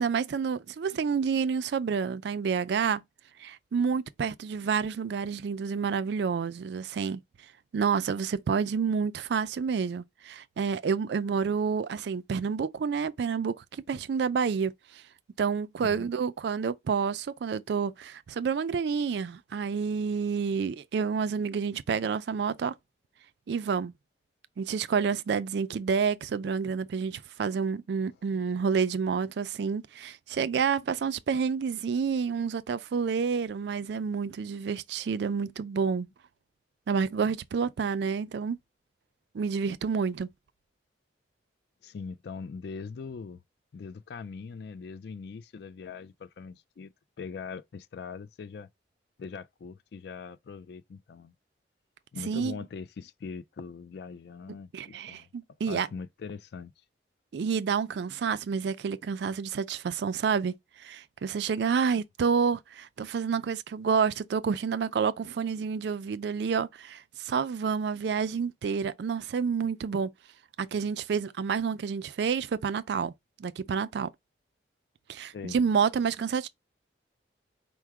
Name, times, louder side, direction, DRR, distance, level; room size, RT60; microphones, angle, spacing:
voice 1, 0.0-3.0 3.4-7.2 7.7-15.0 15.4-22.7 23.5-23.9 24.6-36.1 36.9-38.6 39.3-40.3 52.3-52.5 54.7-55.9 57.3-70.1 70.6-73.1 73.4-74.1 75.1-76.5, right 6 dB, 65° right, 0.3 m, -29 dB
voice 2, 41.8-43.4 43.7-48.7 49.2-51.3 52.1-55.3 55.7-56.7 75.3-75.6, left 5 dB, 55° left, 0.3 m, -41 dB
4.6 x 2.1 x 4.6 m
head